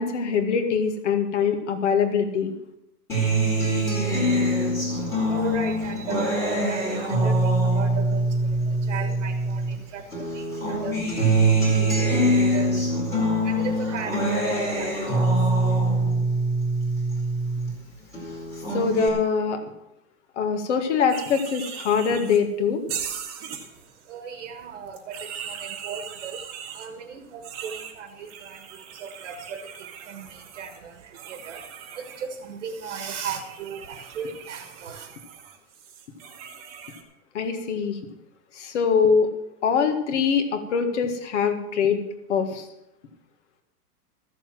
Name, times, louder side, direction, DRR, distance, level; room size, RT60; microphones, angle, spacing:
voice 1, 0.0-2.5 18.7-19.6 20.4-22.8 37.3-38.0 38.5-39.3 39.6-42.7, left 6 dB, 50° left, 7 dB, 1.8 m, -23 dB
Acoustic guitar, 3.1-9.7 10.1-17.7 18.1-19.1, right 1 dB, 5° left, 2.2 m, -23 dB
voice 2, 4.9-16.1 23.6-35.2, right 6 dB, 50° right, 7 dB, 1.5 m, -37 dB
sound 1, 21.1-22.4 22.9-24.0 24.9-26.9 27.4-32.3 32.8-37.0, right 8 dB, 25° right, 1.3 m, -39 dB
14.0 x 7.1 x 7.4 m, 0.85 s
supercardioid pair, 180°, 47 cm